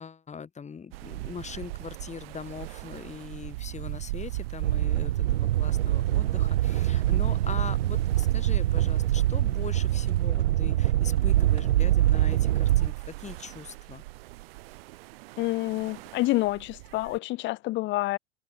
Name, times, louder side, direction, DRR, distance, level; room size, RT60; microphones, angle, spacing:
voice 1, 0.0-14.0, left 6 dB, 20° left, 6.3 m, -41 dB
sound 1, 0.9-17.2, right 20 dB, 70° right, 3.3 m, -41 dB
sound 2, 4.6-12.9, right 14 dB, 85° right, 0.7 m, -24 dB
voice 2, 15.4-18.2, left 18 dB, 35° left, 0.6 m, -28 dB
hypercardioid pair, 105°, 31 cm